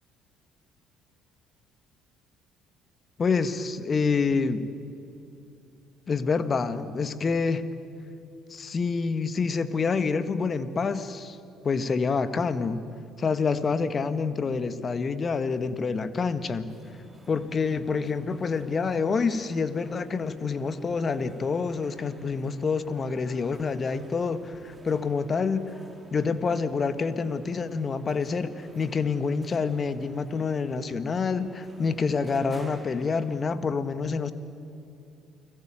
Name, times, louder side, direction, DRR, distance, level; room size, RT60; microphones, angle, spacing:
voice 1, 3.2-4.7 6.1-7.6 8.5-11.4 11.6-12.8 13.2-16.7 17.3-25.6 26.1-34.3, left 5 dB, 40° left, 12 dB, 1.7 m, -27 dB
sound 1, 16.7-33.4, right 1 dB, 10° right, 4.8 m, -52 dB
30.0 x 21.0 x 8.9 m, 2.7 s
hypercardioid pair, 55°, 0 cm